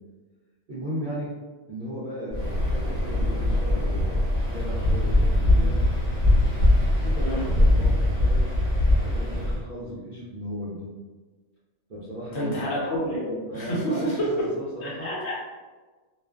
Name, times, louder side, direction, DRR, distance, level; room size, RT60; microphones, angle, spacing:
voice 1, 0.7-1.3 1.7-5.7 6.9-8.5 8.9-10.9 11.9-12.8 13.5-15.1, equal, 60° right, -9 dB, 0.5 m, -36 dB
Waves surf, 2.3-9.6, left 1 dB, 30° right, 1.0 m, -22 dB
voice 2, 12.3-14.5 14.8-15.3, equal, 60° left, -6 dB, 0.8 m, -28 dB
2.4 x 2.2 x 2.3 m, 1.3 s
omnidirectional pair, 1.4 m